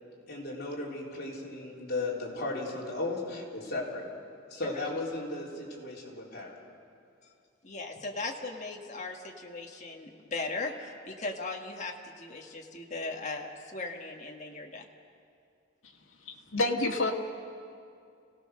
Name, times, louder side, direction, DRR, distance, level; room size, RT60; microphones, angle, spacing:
voice 1, 0.3-4.0 4.5-6.6, left 2 dB, 55° left, -3 dB, 4.0 m, -35 dB
voice 2, 7.6-14.9, left 3 dB, 35° left, 1 dB, 1.6 m, -38 dB
voice 3, 16.3-17.1, left 2 dB, 80° left, 0 dB, 1.9 m, -28 dB
29.0 x 17.5 x 6.5 m, 2.4 s
head